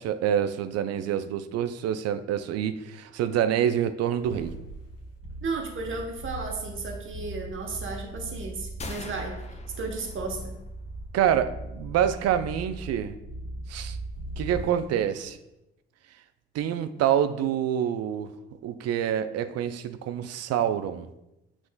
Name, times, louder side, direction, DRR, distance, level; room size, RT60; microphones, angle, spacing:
voice 1, 0.0-4.5 11.1-13.2 13.7-14.0 14.4-15.4 16.5-18.3 18.6-21.1, right 9 dB, 55° right, 11 dB, 0.4 m, -26 dB
sound 1, 4.2-14.8 15.2-15.3, right 1 dB, 50° left, 1.2 m, -39 dB
voice 2, 5.4-9.3 9.8-10.5, right 3 dB, 40° right, 1 dB, 1.1 m, -34 dB
sound 2, 8.8-10.7, left 3 dB, 20° left, 0.5 m, -42 dB
7.0 x 2.4 x 2.3 m, 0.90 s
hypercardioid pair, 45°, 30 cm